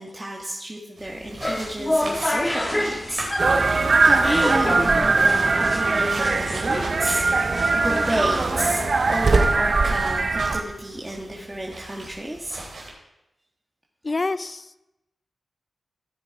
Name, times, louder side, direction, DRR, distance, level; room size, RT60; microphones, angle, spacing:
voice 1, 0.0-7.2 7.7-12.6, right 1 dB, 15° right, -2 dB, 1.7 m, -31 dB
sound 1, 1.0-12.9, right 2 dB, 75° right, 3.8 m, -40 dB
sound 2, 1.2-10.3, left 1 dB, 20° left, 1.7 m, -30 dB
sound 3, 3.4-10.6, right 3 dB, 55° right, 1.0 m, -21 dB
voice 2, 14.0-14.8, left 3 dB, 40° left, 13 dB, 0.6 m, -27 dB
16.0 x 6.8 x 4.7 m, 0.90 s
cardioid pair, 75°, 0 cm